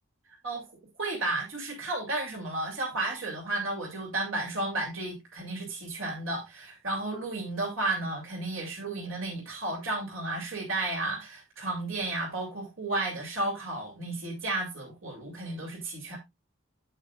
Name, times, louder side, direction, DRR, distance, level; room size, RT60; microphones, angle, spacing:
voice 1, 0.4-16.2, right 2 dB, 75° right, 2.9 m, -33 dB
8.9 x 8.2 x 2.5 m
head